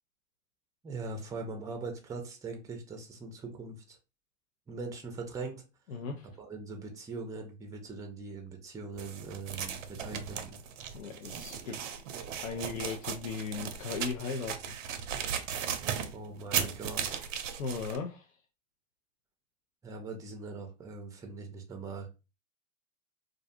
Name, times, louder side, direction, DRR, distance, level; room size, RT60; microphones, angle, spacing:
voice 1, 0.8-4.0 4.7-5.6 6.4-10.6 16.0-17.2 19.8-22.1, right 3 dB, 10° right, 3 dB, 0.4 m, -41 dB
voice 2, 5.9-6.3 10.9-11.8 12.4-14.8 17.6-18.4, left 5 dB, 85° left, 2 dB, 0.5 m, -37 dB
sound 1, 9.0-18.0, right 8 dB, 70° right, 0.6 m, -37 dB
2.4 x 2.2 x 2.6 m, 0.29 s
hypercardioid pair, 95°, 39 cm